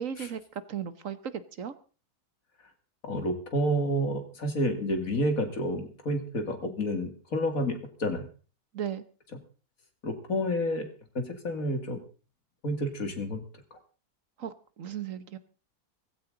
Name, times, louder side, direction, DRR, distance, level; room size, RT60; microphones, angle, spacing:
voice 1, 0.0-1.7 8.7-9.0 14.4-15.4, right 8 dB, 60° right, 13 dB, 1.4 m, -36 dB
voice 2, 3.0-8.2 10.0-10.9 11.1-12.0 12.6-13.4 13.7-13.8, equal, 65° left, 6 dB, 2.9 m, -29 dB
17.5 x 15.5 x 3.9 m, 0.37 s
omnidirectional pair, 1.6 m